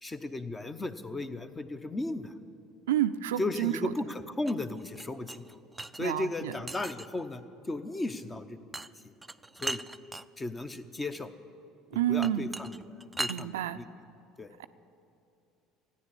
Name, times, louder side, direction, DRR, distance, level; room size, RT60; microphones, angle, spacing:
voice 1, 0.0-2.3 3.4-5.6 5.9-8.6 9.6-9.8 10.4-11.3 12.1-13.9 14.4-14.5, left 2 dB, 20° left, 10 dB, 0.9 m, -35 dB
voice 2, 2.9-3.7 6.0-6.5 11.9-12.5 13.3-13.8 14.6-14.7, right 12 dB, 85° right, 11 dB, 0.4 m, -29 dB
sound 1, 4.5-6.0 6.7-7.2 8.7-8.9 9.2-10.3 12.2-13.4, right 2 dB, 15° right, 0.4 m, -38 dB
14.5 x 9.6 x 8.4 m, 2.8 s
hypercardioid pair, 70°, 0 cm